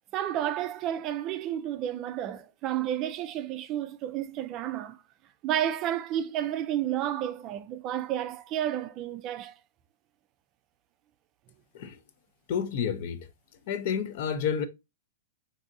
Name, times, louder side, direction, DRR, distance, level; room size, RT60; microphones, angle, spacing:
voice 1, 0.1-5.0 5.4-9.6, right 11 dB, 35° right, 0.3 m, -31 dB
voice 2, 12.5-13.3 13.7-14.7, left 7 dB, 55° left, 0.5 m, -30 dB
4.1 x 2.6 x 2.5 m
hypercardioid pair, 140°, 0 cm